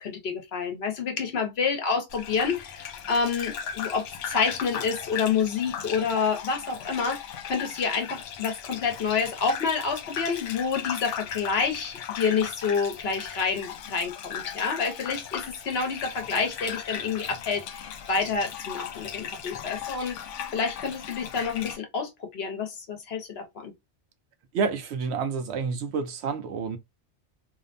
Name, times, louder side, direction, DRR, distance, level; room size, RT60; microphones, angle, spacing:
voice 1, 0.0-20.2 20.5-23.7, left 5 dB, 65° left, 0.9 m, -28 dB
Gurgling / Bathtub (filling or washing), 2.1-21.8, left 8 dB, 90° left, 0.9 m, -37 dB
voice 2, 24.5-26.8, right 5 dB, 70° right, 0.8 m, -29 dB
2.7 x 2.1 x 2.4 m
omnidirectional pair, 1.2 m